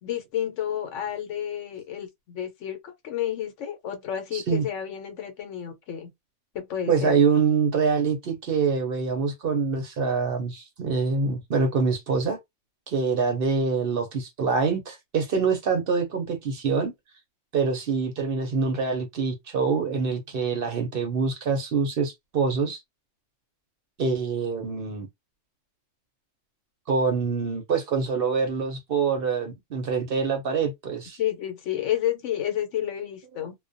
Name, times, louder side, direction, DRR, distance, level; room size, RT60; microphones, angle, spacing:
voice 1, 0.0-6.1 6.5-7.1 31.2-33.5, left 10 dB, 75° left, 1.0 m, -30 dB
voice 2, 4.3-4.6 6.9-12.4 12.9-16.9 17.5-22.8 24.0-25.1 26.9-31.2, right 5 dB, 60° right, 0.7 m, -25 dB
2.2 x 2.1 x 2.5 m
omnidirectional pair, 1.3 m